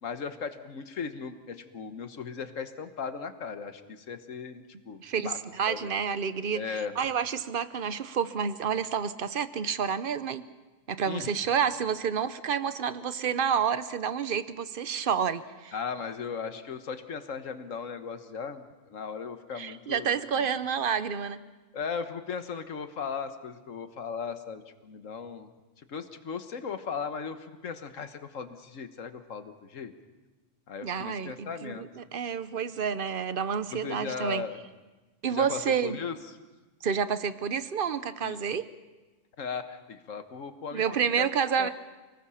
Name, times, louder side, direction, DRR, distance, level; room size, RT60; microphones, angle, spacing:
voice 1, 0.0-5.4 5.7-5.9 6.5-7.0 11.1-11.3 15.7-20.1 21.7-25.5 25.9-29.9 30.7-31.9 33.7-34.6 35.3-36.2 38.2-38.4 39.4-40.8 41.2-41.3 41.6-41.7, left 6 dB, 85° left, 9 dB, 1.6 m, -37 dB
voice 2, 5.0-10.4 10.9-15.7 19.5-21.5 30.8-34.4 35.2-36.0 36.8-38.7 40.7-41.7, right 7 dB, 50° right, 13 dB, 1.0 m, -29 dB
29.0 x 19.5 x 5.7 m, 1.2 s
omnidirectional pair, 1.3 m